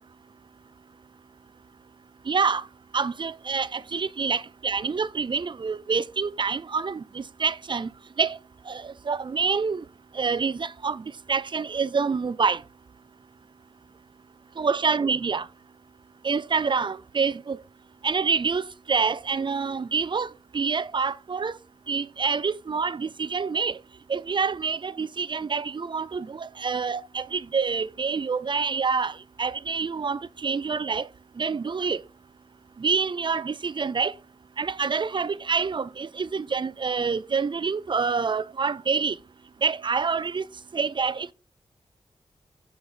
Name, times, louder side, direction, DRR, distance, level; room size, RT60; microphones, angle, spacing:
voice 1, 2.3-2.6 2.9-7.9 8.2-8.4 8.7-9.8 10.2-11.0 11.3-12.6 14.6-15.5 16.2-17.6 18.0-20.3 20.5-21.6 21.9-23.7 24.1-29.1 29.4-31.1 31.4-32.0 32.8-34.1 34.6-39.1 39.6-40.4 40.7-41.3, right 5 dB, 40° right, 0.4 m, -27 dB
6.1 x 5.9 x 3.9 m
cardioid pair, 45°, 12 cm